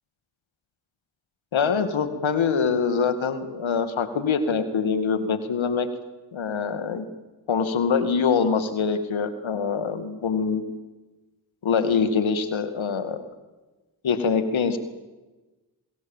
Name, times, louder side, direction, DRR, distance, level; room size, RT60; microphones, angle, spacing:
voice 1, 1.5-5.9 6.3-7.0 7.5-10.6 11.6-13.3 14.0-14.8, left 6 dB, 75° left, 10 dB, 2.3 m, -24 dB
25.5 x 21.5 x 7.4 m, 1.1 s
cardioid pair, 45°, 47 cm